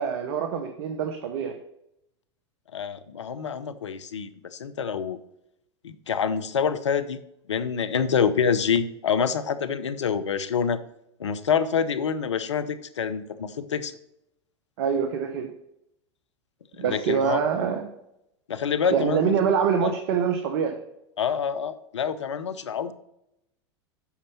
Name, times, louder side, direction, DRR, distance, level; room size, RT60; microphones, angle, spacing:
voice 1, 0.0-1.6 14.8-15.5 16.8-17.9 18.9-20.8, right 7 dB, 60° right, 6 dB, 1.1 m, -25 dB
voice 2, 2.7-5.2 5.8-7.2 7.5-10.8 11.2-13.9 16.8-17.4 18.5-19.3 19.8-19.9 21.2-22.9, left 7 dB, 85° left, 13 dB, 0.7 m, -26 dB
8.4 x 5.5 x 5.5 m, 0.80 s
hypercardioid pair, 95°, 15 cm